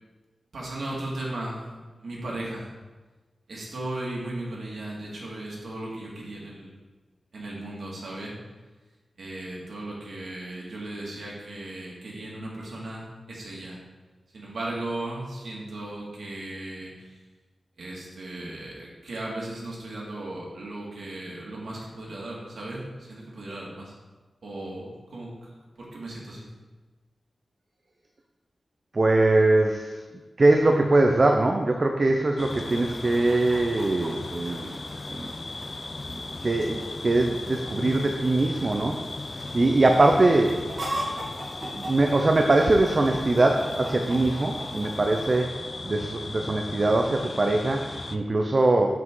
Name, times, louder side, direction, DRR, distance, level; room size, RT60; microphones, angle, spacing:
voice 1, 0.5-2.7 3.5-6.7 7.3-8.3 9.2-13.8 14.3-17.2 17.8-23.9 24.4-26.4, right 1 dB, 75° right, -4 dB, 2.0 m, -36 dB
voice 2, 28.9-30.0 30.4-34.7 35.1-35.3 36.1-36.2 36.4-40.6 41.7-45.5 45.8-49.0, right 2 dB, 35° right, 3 dB, 0.5 m, -22 dB
sound 1, 32.4-48.2, left 2 dB, 35° left, 0.4 m, -37 dB
Chicken rooster, 32.5-45.4, right 1 dB, 55° right, 1.8 m, -41 dB
7.6 x 6.0 x 3.8 m, 1.3 s
wide cardioid pair, 135°, 0 cm